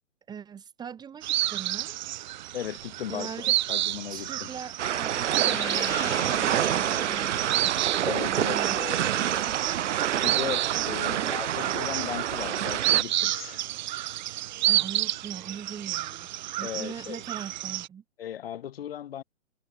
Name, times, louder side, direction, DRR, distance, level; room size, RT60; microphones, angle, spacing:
voice 1, 0.3-2.0 3.1-3.6 4.1-11.4 14.6-16.3 16.6-18.0, right 7 dB, 10° right, 1.5 m, -41 dB
sound 1, 1.2-17.9, right 14 dB, 40° right, 0.9 m, -30 dB
voice 2, 2.5-4.6 8.0-9.0 10.2-13.6 16.6-17.2 18.2-19.2, left 10 dB, 55° left, 1.5 m, -36 dB
sound 2, 4.8-13.0, right 10 dB, 75° right, 0.5 m, -28 dB
Gong, 5.5-10.5, left 9 dB, 10° left, 0.6 m, -43 dB
figure-of-eight pair, 125°, 36 cm